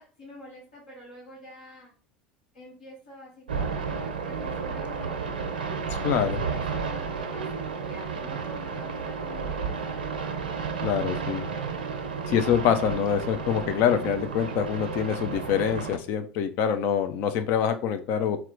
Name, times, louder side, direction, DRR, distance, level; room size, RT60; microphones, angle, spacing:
voice 1, 0.0-1.9 2.5-3.8 4.2-5.3 5.9-9.7, equal, 75° left, -7 dB, 1.7 m, -47 dB
sound 1, 3.5-16.0, right 5 dB, 80° right, 0.7 m, -32 dB
voice 2, 6.0-6.4 10.8-11.5 12.3-18.4, left 8 dB, 55° left, 9 dB, 0.5 m, -25 dB
4.3 x 2.3 x 3.8 m, 0.39 s
figure-of-eight pair, 75°, 5 cm